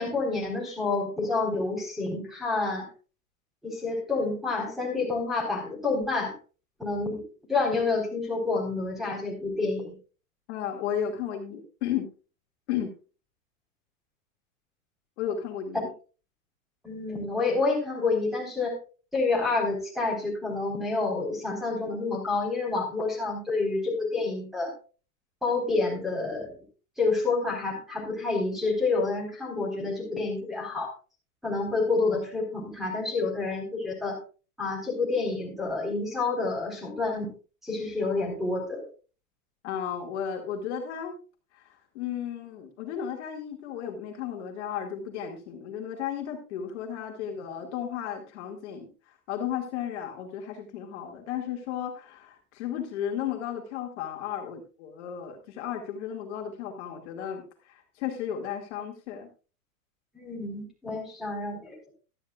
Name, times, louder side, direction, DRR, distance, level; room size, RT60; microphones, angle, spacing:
voice 1, 0.0-2.9 3.6-6.3 6.8-7.2 7.5-9.9 16.8-18.8 19.1-24.7 25.4-26.5 27.0-30.9 31.4-34.2 34.6-37.3 37.6-38.8 60.1-61.8, left 3 dB, ahead, 2 dB, 4.1 m, -28 dB
voice 2, 10.5-12.1 12.7-12.9 15.2-15.9 39.6-41.1 41.5-59.3, left 9 dB, 50° left, 3 dB, 2.3 m, -34 dB
14.5 x 12.5 x 2.4 m, 0.34 s
hypercardioid pair, 155°, 45 cm